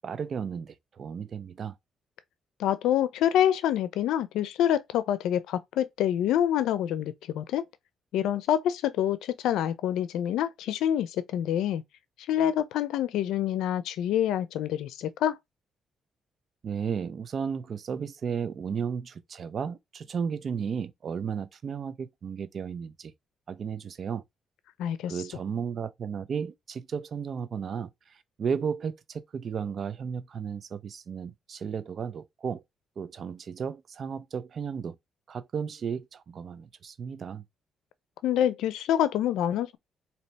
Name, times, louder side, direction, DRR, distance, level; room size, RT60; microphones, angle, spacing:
voice 1, 0.0-1.8 16.6-23.1 23.5-24.2 25.1-32.6 33.0-35.0 35.3-37.4, right 6 dB, 50° right, 0.6 m, -34 dB
voice 2, 2.6-7.6 8.1-11.8 12.3-15.4 24.8-25.1 38.2-39.8, left 10 dB, 85° left, 0.5 m, -26 dB
4.1 x 2.9 x 3.3 m
cardioid pair, 90°, 0 cm